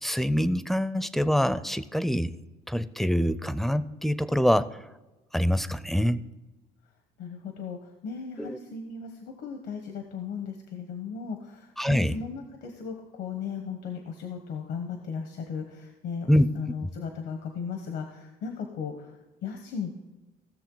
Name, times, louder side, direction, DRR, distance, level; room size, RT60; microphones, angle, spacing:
voice 1, 0.0-2.3 2.7-4.8 5.3-6.3 8.4-8.6 11.8-12.2 16.3-16.5 16.8-16.9, equal, ahead, 15 dB, 0.4 m, -25 dB
voice 2, 7.2-19.1 19.4-19.9, left 6 dB, 85° left, 4 dB, 1.1 m, -36 dB
16.0 x 6.7 x 3.9 m, 1.1 s
cardioid pair, 110°, 17 cm